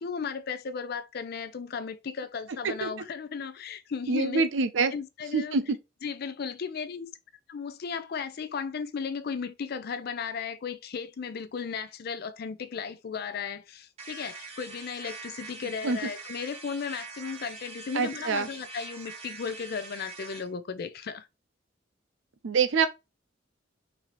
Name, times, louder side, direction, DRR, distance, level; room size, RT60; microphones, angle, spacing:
voice 1, 0.0-4.4 4.9-5.6 6.0-7.1 7.5-21.3, left 6 dB, 55° left, 0.4 m, -35 dB
voice 2, 4.1-4.9 5.3-5.8 15.8-16.1 18.0-18.5 22.4-22.9, right 4 dB, 85° right, 0.5 m, -25 dB
sound 1, 14.0-20.5, right 4 dB, 35° right, 1.2 m, -44 dB
4.1 x 2.7 x 3.0 m
head